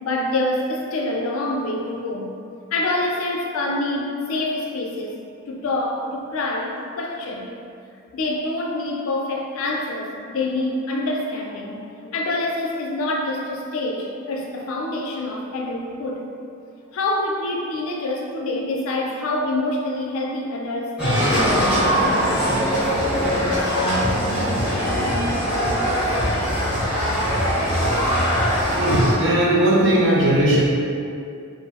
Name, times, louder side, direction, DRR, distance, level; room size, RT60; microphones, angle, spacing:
voice 1, 0.0-2.3 2.7-5.2 5.5-7.6 8.1-16.2 16.9-22.3 26.4-27.5, left 2 dB, 75° left, 0 dB, 0.4 m, -26 dB
sound 1, 21.0-29.1, equal, 5° right, 0.7 m, -21 dB
voice 2, 28.8-30.6, right 1 dB, 55° right, -5 dB, 0.5 m, -18 dB
2.5 x 2.0 x 3.4 m, 2.4 s
head